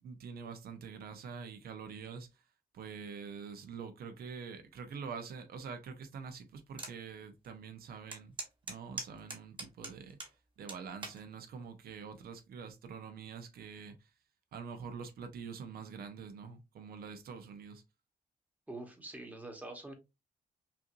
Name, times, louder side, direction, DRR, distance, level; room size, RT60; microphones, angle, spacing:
voice 1, 0.0-2.3 2.7-8.3 8.7-10.2 10.6-14.0 14.5-17.8, right 6 dB, 75° right, 0.7 m, -45 dB
sound 1, 6.8-7.0 7.4-7.5 8.1-10.3 10.7-11.2 11.9-12.2, right 3 dB, 30° right, 1.3 m, -42 dB
voice 2, 18.7-19.9, right 2 dB, 10° right, 1.1 m, -45 dB
5.7 x 2.6 x 2.5 m
wide cardioid pair, 150°, 16 cm